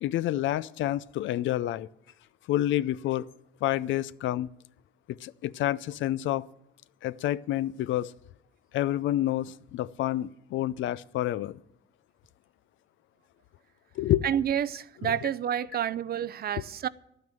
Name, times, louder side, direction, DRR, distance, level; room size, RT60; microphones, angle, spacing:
voice 1, 0.0-1.9 2.5-3.3 3.6-4.5 5.1-6.5 7.0-8.1 8.7-11.6 14.0-14.3 15.0-15.1, left 13 dB, 75° left, 0.4 m, -28 dB
voice 2, 14.2-16.9, right 9 dB, 50° right, 0.5 m, -29 dB
10.5 x 9.5 x 7.5 m
cardioid pair, 90°, 20 cm